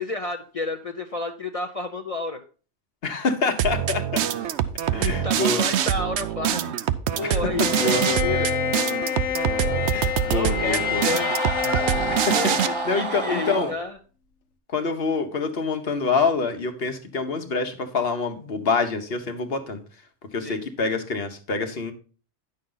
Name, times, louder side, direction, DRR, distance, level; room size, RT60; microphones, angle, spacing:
voice 1, 0.0-2.4 4.8-6.8 7.2-8.5 10.3-11.3 12.3-14.0 20.4-20.6, left 3 dB, 35° left, 5 dB, 0.6 m, -31 dB
voice 2, 3.0-4.2 4.9-5.6 7.2-7.4 7.7-8.0 9.9-11.0 12.1-12.3 12.6-13.7 14.7-19.8 20.3-21.9, left 4 dB, 55° left, 7 dB, 1.3 m, -26 dB
sound 1, 3.6-12.7, right 10 dB, 70° right, 0.9 m, -25 dB
Bowed string instrument, 7.6-13.7, left 10 dB, 85° left, 1.2 m, -28 dB
sound 2, 9.3-13.7, right 4 dB, 35° right, 0.5 m, -31 dB
9.9 x 6.6 x 3.9 m, 0.37 s
omnidirectional pair, 1.2 m